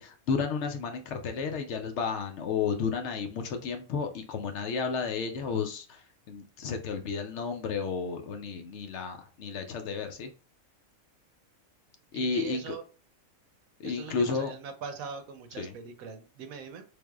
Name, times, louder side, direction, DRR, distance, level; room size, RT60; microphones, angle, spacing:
voice 1, 0.0-10.3 12.1-12.7 13.8-14.5 15.6-15.7, left 5 dB, 65° left, 6 dB, 0.8 m, -32 dB
voice 2, 12.1-12.8 13.8-16.8, right 6 dB, 85° right, 8 dB, 1.1 m, -42 dB
3.5 x 3.3 x 2.3 m, 0.35 s
omnidirectional pair, 1.4 m